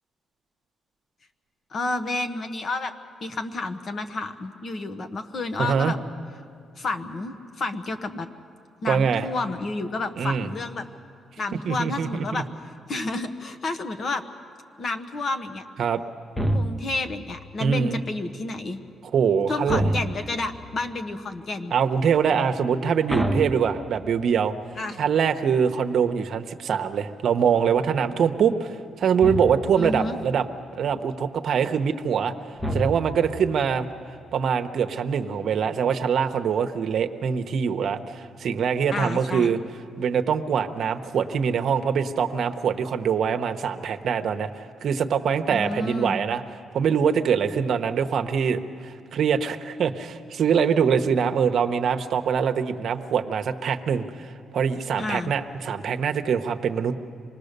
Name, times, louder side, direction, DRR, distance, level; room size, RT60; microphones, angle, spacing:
voice 1, 1.7-2.9 3.2-6.0 6.8-8.3 8.8-10.9 11.4-12.4 12.9-14.2 14.8-15.6 16.5-18.8 19.5-21.7 24.8-25.1 29.8-30.2 38.9-39.6 45.5-46.2 55.0-55.3, left 2 dB, 45° left, 8 dB, 1.2 m, -30 dB
voice 2, 5.6-5.9 8.9-9.3 10.2-10.5 11.6-12.4 15.8-16.0 17.6-18.0 19.1-19.9 21.7-24.5 25.0-30.5 30.8-32.3 32.7-33.9 34.3-39.6 40.0-46.4 46.7-57.0, right 7 dB, 65° right, 7 dB, 0.9 m, -24 dB
sound 1, 16.4-17.1 19.7-20.5 23.1-24.3 29.2-29.9 32.6-33.4, right 1 dB, 5° left, 0.9 m, -27 dB
25.5 x 19.5 x 6.7 m, 2.3 s
cardioid pair, 115°, 0 cm